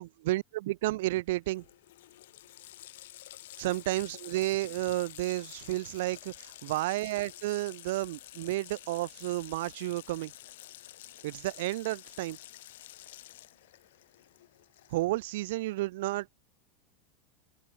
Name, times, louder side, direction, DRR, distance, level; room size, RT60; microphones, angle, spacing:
voice 1, 0.0-1.6 3.6-10.3 11.2-12.4 14.9-16.3, right 18 dB, 75° right, 0.3 m, -32 dB
Water tap faucet, 1.2-1.3 1.5-15.2, left 15 dB, 80° left, 5.3 m, -50 dB
open air
supercardioid pair, 135°, 0 cm